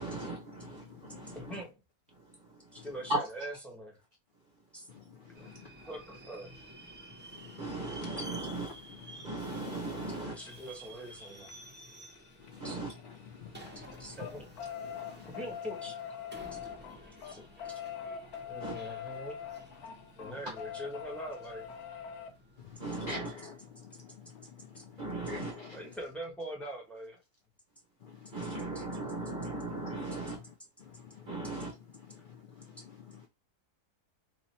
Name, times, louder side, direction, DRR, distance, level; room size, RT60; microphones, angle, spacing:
voice 1, 0.0-1.6 2.1-3.2 7.6-8.8 9.2-10.4 12.6-12.9 18.6-18.8 22.8-23.3 25.0-25.5 28.3-30.4 31.3-31.7, right 2 dB, 45° right, 0.7 m, -37 dB
voice 2, 0.6-1.4 2.8-2.9 4.9-5.7 7.3-8.2 8.9-9.7 12.4-12.7 13.0-13.9 14.8-15.3 18.6-18.8 22.6-25.8 28.0-30.1 30.8-31.6 32.1-33.3, left 4 dB, 65° left, 0.5 m, -49 dB
voice 3, 1.3-1.8 2.7-3.9 4.7-4.9 5.3-5.5 5.8-6.5 10.2-11.5 12.6-12.8 14.0-14.5 15.2-16.0 17.3-17.8 18.5-19.4 20.2-21.7 24.7-24.8 25.7-27.2 28.7-28.8, right 1 dB, ahead, 1.0 m, -43 dB
Subway metro underground, 5.3-23.8, right 1 dB, 20° right, 0.3 m, -52 dB
sound 1, 8.0-8.1 9.8-13.3 13.6-22.3 24.0-24.1 24.4-24.5 24.8-24.9, left 8 dB, 80° left, 1.2 m, -44 dB
3.0 x 2.8 x 4.2 m
omnidirectional pair, 1.6 m